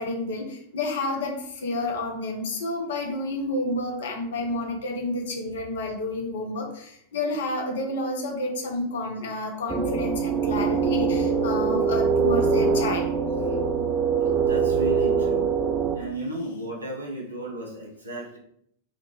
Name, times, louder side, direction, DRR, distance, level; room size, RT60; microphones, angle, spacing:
voice 1, 0.0-13.1, left 2 dB, 60° left, 3 dB, 0.6 m, -30 dB
sound 1, 9.7-16.0, right 5 dB, 15° right, 0.4 m, -23 dB
voice 2, 14.5-15.5 15.9-18.4, right 1 dB, 80° right, -3 dB, 0.8 m, -34 dB
2.9 x 2.1 x 3.0 m, 0.70 s
figure-of-eight pair, 90°, 0 cm